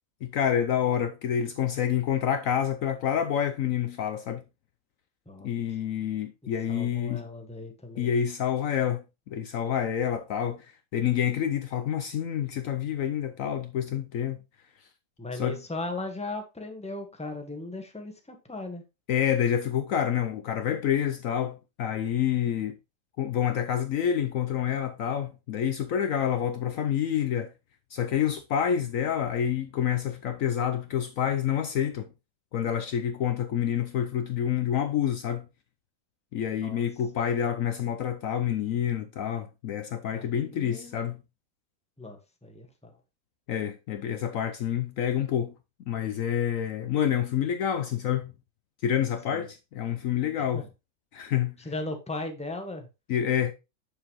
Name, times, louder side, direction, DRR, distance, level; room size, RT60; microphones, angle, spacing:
voice 1, 0.2-4.4 5.4-7.2 8.0-14.4 15.4-15.6 19.1-22.8 23.2-27.5 27.9-32.1 32.5-35.5 36.3-41.2 43.5-45.5 45.9-48.3 48.8-50.6 51.1-51.6 53.1-53.5, left 9 dB, 65° left, 1.0 m, -28 dB
voice 2, 5.2-5.8 6.4-8.1 15.2-18.8 36.6-36.8 40.1-41.2 42.0-43.0 49.3-49.5 50.4-50.7 51.6-52.9, left 2 dB, 5° left, 1.2 m, -38 dB
7.3 x 6.7 x 3.0 m
omnidirectional pair, 1.6 m